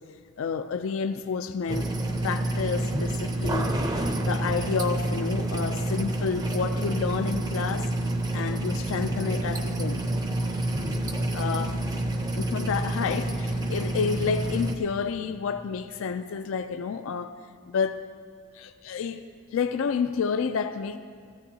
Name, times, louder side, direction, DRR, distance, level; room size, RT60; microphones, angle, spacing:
voice 1, 0.4-1.9 2.2-7.9 8.3-10.0 11.3-11.7 12.3-17.3 17.7-18.0 18.5-19.2 19.5-21.0, left 5 dB, 65° left, 9 dB, 0.3 m, -30 dB
sound 1, 1.7-14.7, right 1 dB, 20° right, 0.5 m, -28 dB
14.0 x 14.0 x 2.8 m, 2.1 s
head